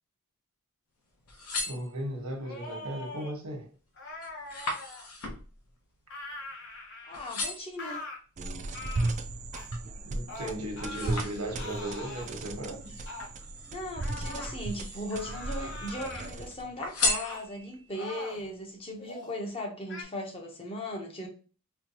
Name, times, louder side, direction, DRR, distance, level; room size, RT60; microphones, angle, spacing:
sound 1, 1.1-2.4 3.0-3.4 3.7-6.8 7.1-7.8 8.4-9.9 10.3-11.9 12.8-13.9 14.5-15.3 15.6-16.3 16.8-17.9 18.4-18.5, left 3 dB, 85° left, 0.9 m, -36 dB
voice 1, 1.6-3.7 10.0-12.9, right 1 dB, 85° right, 1.1 m, -36 dB
sound 2, 2.4-3.3 4.0-5.1 6.1-7.3 7.8-8.2 8.7-9.1 9.5-9.7 10.3-11.3 11.6-12.3 13.1-13.3 14.0-14.6 15.1-16.3 17.2-17.5 17.9-18.5 19.0-19.3 19.9-20.0, left 2 dB, 55° left, 1.0 m, -42 dB
voice 2, 7.1-8.0 13.7-21.3, left 1 dB, 25° left, 0.8 m, -38 dB
sound 3, 8.4-16.8, right 2 dB, 35° right, 0.4 m, -36 dB
4.3 x 2.3 x 2.8 m
head